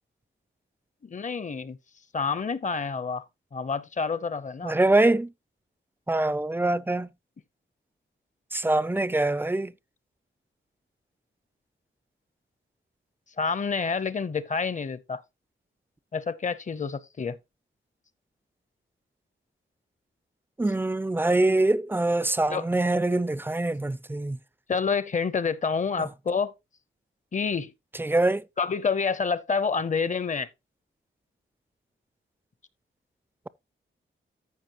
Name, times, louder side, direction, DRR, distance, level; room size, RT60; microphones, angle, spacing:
voice 1, 1.0-1.8 2.1-3.2 3.5-4.8 13.4-15.2 16.1-17.4 22.5-22.6 24.7-26.5 27.3-27.7 28.6-30.5, left 5 dB, 40° left, 0.7 m, -28 dB
voice 2, 4.6-5.3 6.1-7.1 8.5-9.7 20.6-24.4 28.0-28.4, right 2 dB, 10° right, 0.4 m, -24 dB
14.0 x 5.2 x 2.9 m
wide cardioid pair, 165°, 21 cm